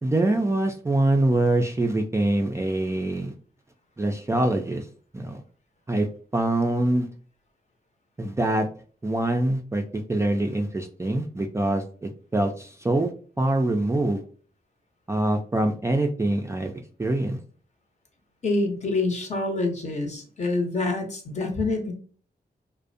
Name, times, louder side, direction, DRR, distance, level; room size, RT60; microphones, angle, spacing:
voice 1, 0.0-3.3 4.0-4.8 5.1-5.4 5.9-6.1 6.3-7.1 8.2-8.7 9.0-9.8 10.1-13.1 13.4-14.2 15.1-16.7 17.0-17.4, right 1 dB, 15° right, 3 dB, 0.3 m, -24 dB
voice 2, 18.4-21.9, left 2 dB, 45° left, 3 dB, 0.8 m, -26 dB
2.4 x 2.0 x 2.6 m, 0.43 s
cardioid pair, 70°, 17 cm